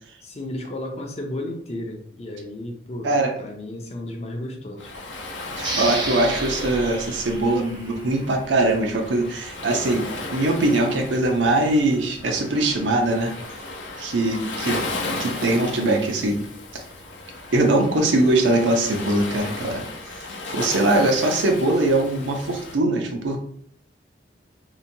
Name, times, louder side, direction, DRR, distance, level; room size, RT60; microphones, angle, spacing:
voice 1, 0.2-3.1 3.4-4.9, left 1 dB, 35° left, 2 dB, 0.4 m, -33 dB
voice 2, 3.0-3.3 5.6-13.3 14.0-14.8 15.2-16.4 16.7-16.8 17.5-19.8 20.5-23.4, right 2 dB, 90° right, 3 dB, 0.5 m, -21 dB
Waves surf, 4.8-22.8, left 2 dB, 80° left, 0.6 m, -35 dB
sound 1, 5.6-8.8, right 2 dB, 25° right, 0.5 m, -32 dB
2.8 x 2.2 x 2.6 m, 0.65 s
head